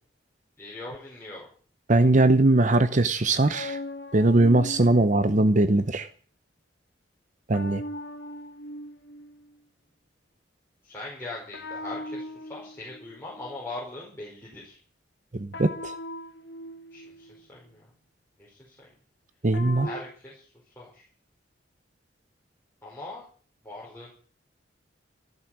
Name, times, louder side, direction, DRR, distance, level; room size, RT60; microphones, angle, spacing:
voice 1, 0.6-1.5 10.8-14.8 16.9-17.8 18.4-18.7 19.8-20.4 20.7-21.0 22.8-23.2 23.6-24.1, left 2 dB, 15° left, 5.0 m, -40 dB
voice 2, 1.9-3.8 4.1-6.1 7.5-7.8 15.4-15.9 19.4-19.9, right 2 dB, 45° right, 0.8 m, -20 dB
sound 1, 3.5-5.8 7.5-9.6 11.5-13.6 15.5-17.5 19.5-20.0, left 1 dB, 65° left, 1.6 m, -39 dB
14.5 x 12.5 x 6.2 m
head